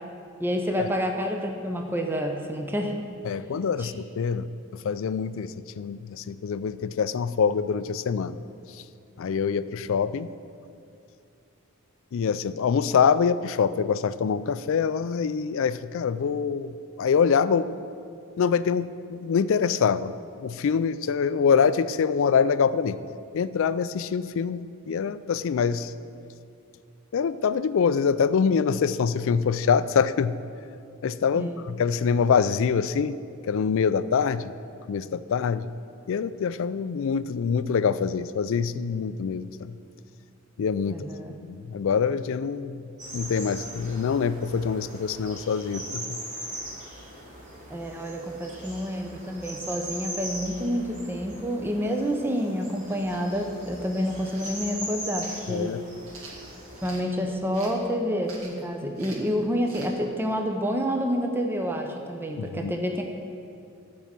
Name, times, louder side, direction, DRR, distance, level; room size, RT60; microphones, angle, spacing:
voice 1, 0.4-3.0 3.8-3.9 31.3-31.6 40.9-41.4 47.7-55.8 56.8-63.0, equal, 10° right, 3 dB, 0.6 m, -28 dB
voice 2, 3.2-4.5 4.8-8.4 9.2-10.3 12.1-17.7 18.4-20.1 20.4-23.0 23.3-25.9 27.1-30.4 31.0-33.2 33.5-34.5 34.9-35.7 36.1-39.8 40.6-41.1 41.5-42.8 43.1-46.2 55.5-55.8 62.4-62.7, left 6 dB, 65° left, 15 dB, 0.3 m, -25 dB
sound 1, 43.0-56.9, equal, 35° right, 2.8 m, -40 dB
sound 2, 54.3-54.6 55.2-55.4 56.0-57.0 57.5-57.8 58.2-58.6 59.0-59.3 59.7-59.9, right 3 dB, 70° right, 1.8 m, -45 dB
13.0 x 4.8 x 7.3 m, 2.5 s
head